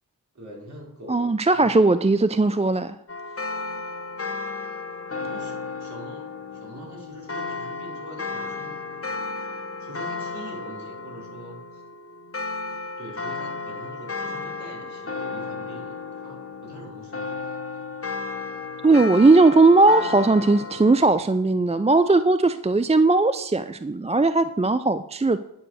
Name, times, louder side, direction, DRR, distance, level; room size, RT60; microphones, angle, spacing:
voice 1, 0.3-1.7 5.2-8.8 9.8-11.8 13.0-17.6, right 1 dB, 45° right, -2 dB, 4.6 m, -43 dB
voice 2, 1.1-3.0 18.8-25.4, right 3 dB, 15° right, 11 dB, 0.5 m, -18 dB
sound 1, 3.1-21.1, left 4 dB, 35° left, 1.2 m, -33 dB
10.0 x 6.9 x 6.4 m, 0.84 s
cardioid pair, 45°, 38 cm